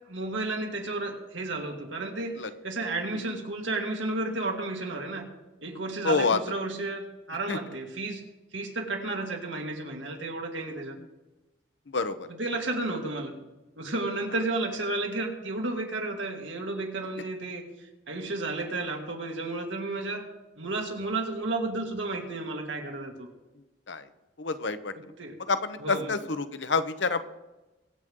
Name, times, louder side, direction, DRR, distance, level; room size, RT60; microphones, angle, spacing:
voice 1, 0.1-5.3 5.6-8.2 8.5-11.0 12.4-13.3 13.8-17.7 18.1-20.3 20.6-23.3 24.9-25.4 25.8-26.1, right 2 dB, 80° right, 1 dB, 2.3 m, -32 dB
voice 2, 6.0-6.4 7.5-7.6 11.9-12.3 23.9-24.1 24.4-25.1 25.5-27.2, left 4 dB, 70° left, 11 dB, 0.8 m, -28 dB
23.0 x 7.9 x 3.8 m, 1.1 s
head